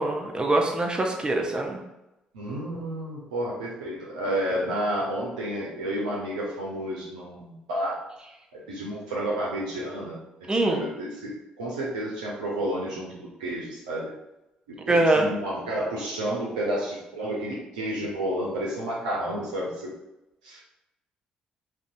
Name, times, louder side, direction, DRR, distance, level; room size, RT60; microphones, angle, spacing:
voice 1, 0.0-1.8 10.5-10.8 14.9-15.3, right 2 dB, 25° right, 2 dB, 0.5 m, -23 dB
voice 2, 2.3-8.0 8.5-10.2 10.7-11.3 11.6-14.1 14.7-19.9 20.4-20.6, right 1 dB, 90° right, -5 dB, 0.4 m, -31 dB
2.6 x 2.1 x 2.5 m, 0.93 s
hypercardioid pair, 50°, 4 cm